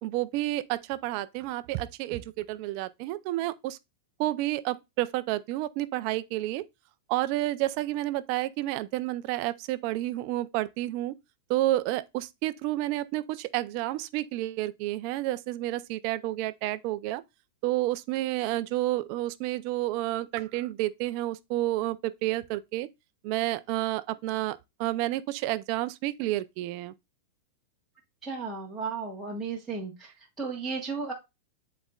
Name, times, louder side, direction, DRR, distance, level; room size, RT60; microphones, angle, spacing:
voice 1, 0.0-3.8 4.2-6.6 7.1-11.1 11.5-17.2 17.6-22.9 23.2-26.9, right 16 dB, 40° right, 0.4 m, -30 dB
voice 2, 28.2-31.1, right 4 dB, 5° right, 1.2 m, -34 dB
10.0 x 4.1 x 2.4 m
supercardioid pair, 160°, 0 cm